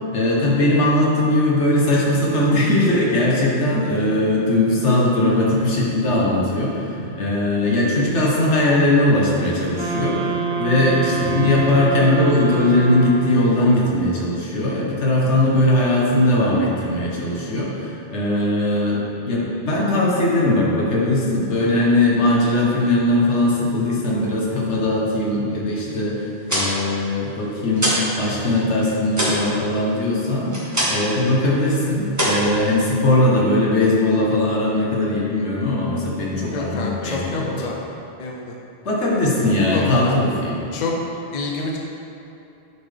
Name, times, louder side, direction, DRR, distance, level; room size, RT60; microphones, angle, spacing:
voice 1, 0.1-37.7 38.8-40.6, left 1 dB, 80° left, -4 dB, 1.5 m, -19 dB
sound 1, 9.7-13.6, right 4 dB, 65° right, 0.9 m, -26 dB
sound 2, 26.2-28.2 28.4-31.2 31.5-31.8 32.1-33.2, equal, 15° right, 1.6 m, -24 dB
voice 2, 36.5-37.8 38.2-38.5 39.6-40.2 40.7-40.9 41.3-41.8, left 3 dB, 45° left, -1 dB, 0.7 m, -27 dB
9.3 x 4.3 x 3.4 m, 2.8 s
omnidirectional pair, 1.2 m